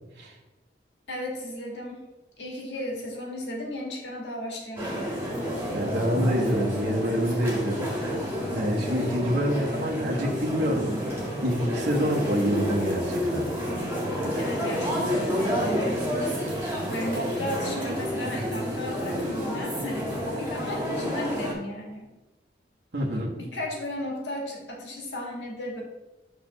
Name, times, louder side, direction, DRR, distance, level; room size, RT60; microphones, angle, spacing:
voice 1, 1.1-2.0 2.4-5.2 8.7-9.1 14.4-16.0 16.8-22.1 23.4-25.8, left 1 dB, 80° left, 0 dB, 1.6 m, -35 dB
sound 1, 4.8-21.5, equal, 15° right, 1.8 m, -29 dB
voice 2, 5.7-7.9 8.5-11.1 11.4-13.5 22.9-23.3, equal, 75° right, -2 dB, 1.3 m, -26 dB
6.5 x 3.4 x 6.0 m, 1.1 s
head